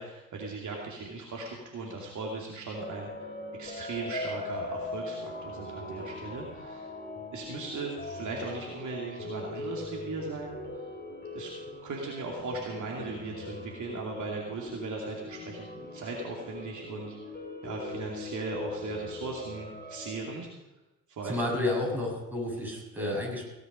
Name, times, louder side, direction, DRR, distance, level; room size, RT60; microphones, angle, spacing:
voice 1, 0.0-3.1 3.6-6.9 7.3-10.6 11.3-11.5 11.8-15.7 15.9-17.2 17.6-20.5 21.1-21.4, right 3 dB, 45° right, -1 dB, 2.7 m, -38 dB
sound 1, 2.8-20.3, left 2 dB, 25° left, 3.1 m, -40 dB
voice 2, 21.2-23.5, left 1 dB, 5° right, -2 dB, 6.5 m, -31 dB
17.5 x 9.7 x 5.2 m, 1.1 s
figure-of-eight pair, 50°, 43 cm